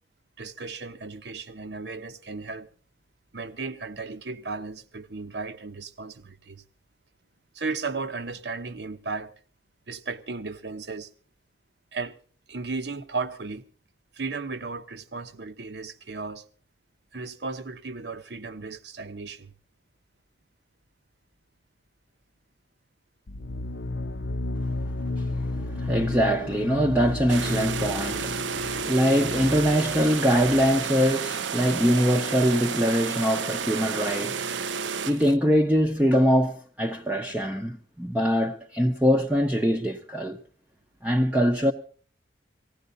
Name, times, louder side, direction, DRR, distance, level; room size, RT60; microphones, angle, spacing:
voice 1, 0.4-2.7 3.3-6.6 7.5-9.3 9.9-11.1 11.9-12.2 12.5-13.6 14.1-16.4 17.1-19.5, right 4 dB, 70° right, 0.9 m, -35 dB
sound 1, 23.3-30.9, left 2 dB, 75° left, 0.7 m, -33 dB
voice 2, 25.2-34.5 35.0-40.4 41.0-41.7, equal, 10° right, 0.7 m, -23 dB
sound 2, 27.3-35.3, right 6 dB, 90° right, 0.6 m, -31 dB
19.0 x 15.5 x 3.9 m
head